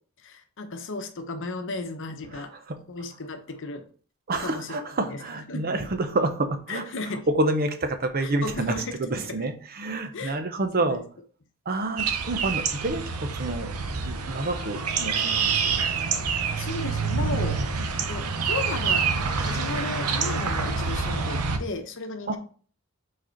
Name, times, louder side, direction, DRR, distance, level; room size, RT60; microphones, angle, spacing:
voice 1, 0.2-2.5 2.9-3.9 4.4-5.2 5.5-5.7 6.7-7.3 8.2-9.4 10.1-10.4 10.8-11.0 16.3-17.6 18.0-19.1 19.4-22.4, left 3 dB, 60° left, 7 dB, 0.8 m, -35 dB
voice 2, 2.3-2.8 4.3-6.8 7.3-11.0 11.7-13.7 14.0-15.8 22.3-22.4, right 2 dB, 45° right, 8 dB, 0.7 m, -28 dB
sound 1, 12.0-21.6, right 5 dB, 85° right, 0.8 m, -27 dB
5.0 x 4.2 x 4.4 m, 0.43 s
head